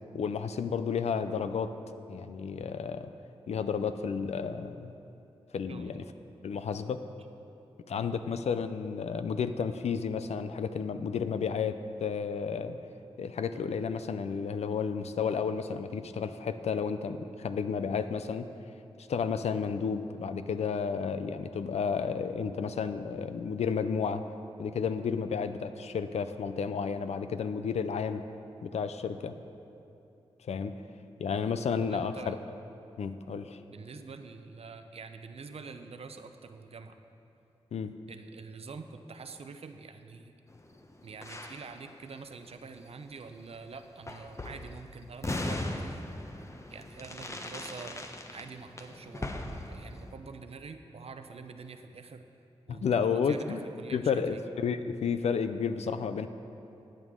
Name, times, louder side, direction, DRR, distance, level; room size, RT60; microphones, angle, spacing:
voice 1, 0.1-1.7 2.1-3.1 3.5-4.9 5.5-6.0 6.4-7.0 7.9-12.8 13.2-18.5 19.0-24.2 24.6-28.2 28.6-29.4 30.5-30.7 31.2-32.4 33.0-33.6 37.7-37.9 52.7-53.6 53.9-56.3, left 6 dB, 90° left, 10 dB, 0.5 m, -32 dB
voice 2, 5.7-6.1 7.9-8.2 31.8-32.4 33.7-37.0 38.1-40.3 41.0-46.0 46.7-49.4 49.7-52.3 52.7-54.4, right 4 dB, 70° right, 8 dB, 0.6 m, -46 dB
sound 1, 40.5-42.9 43.1-43.2 44.0-44.8 45.2-50.1, left 1 dB, 25° left, 0.8 m, -39 dB
14.0 x 9.0 x 3.7 m, 2.8 s
cardioid pair, 65°, 11 cm